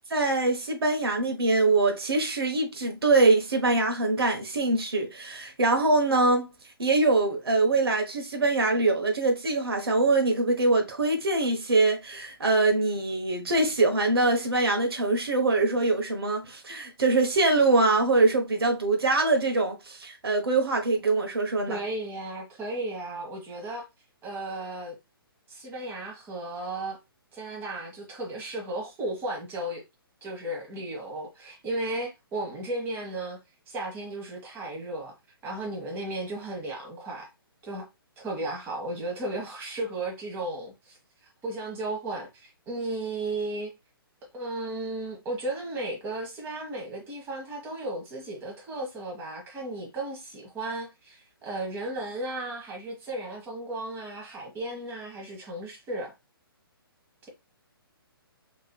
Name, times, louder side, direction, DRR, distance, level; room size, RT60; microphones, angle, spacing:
voice 1, 0.1-6.5 6.8-21.8, right 3 dB, 75° right, 1.1 m, -23 dB
voice 2, 21.7-23.9 24.2-25.0 25.5-27.0 27.3-29.8 30.2-33.4 33.7-35.1 35.4-37.3 37.6-37.9 38.2-41.0 41.4-43.7 44.3-56.1, right 2 dB, 15° right, 1.3 m, -34 dB
4.7 x 2.9 x 2.3 m
figure-of-eight pair, 135°, 13 cm